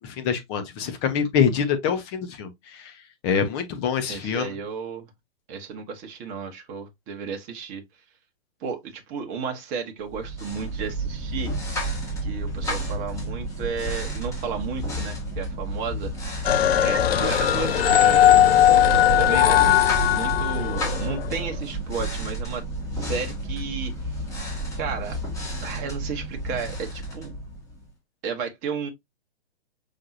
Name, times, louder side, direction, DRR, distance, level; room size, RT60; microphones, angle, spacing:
voice 1, 0.0-2.9 3.2-4.5 18.9-19.0, left 7 dB, 30° left, 1.1 m, -25 dB
voice 2, 4.1-5.1 5.5-7.8 8.6-11.6 12.2-16.1 16.8-18.4 19.2-19.8 20.1-22.6 22.9-23.9 24.8-25.2 25.6-27.4 28.2-28.9, right 5 dB, 25° right, 1.1 m, -33 dB
sound 1, 10.1-27.9, right 1 dB, 10° left, 1.6 m, -31 dB
sound 2, 16.4-21.3, left 12 dB, 70° left, 0.5 m, -19 dB
5.5 x 3.5 x 2.6 m
figure-of-eight pair, 125°, 31 cm